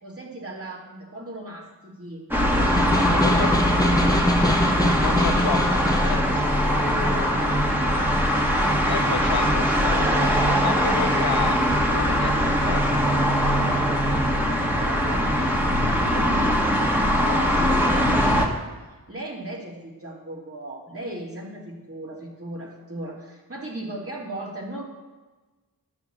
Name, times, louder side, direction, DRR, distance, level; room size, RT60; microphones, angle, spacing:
voice 1, 0.0-2.2 2.6-4.3 6.4-8.2 9.0-9.6 13.5-16.3 17.2-18.6 19.1-24.8, right 1 dB, 40° right, -3 dB, 3.2 m, -37 dB
sound 1, 2.3-18.5, equal, 5° right, 1.8 m, -21 dB
Snare drum, 2.4-6.3, equal, 10° left, 1.0 m, -24 dB
voice 2, 4.9-6.4 8.9-13.0, left 6 dB, 85° left, 7 dB, 1.0 m, -31 dB
11.5 x 7.3 x 7.2 m, 1.2 s
wide cardioid pair, 95°, 37 cm